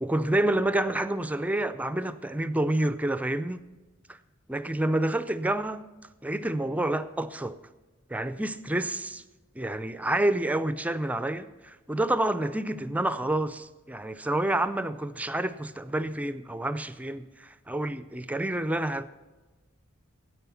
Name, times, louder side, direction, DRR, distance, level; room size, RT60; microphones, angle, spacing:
voice 1, 0.0-3.6 4.1-4.2 4.5-5.9 6.2-7.6 8.1-9.2 9.6-19.1, right 1 dB, 5° right, 0.4 m, -28 dB
13.5 x 8.7 x 7.0 m
head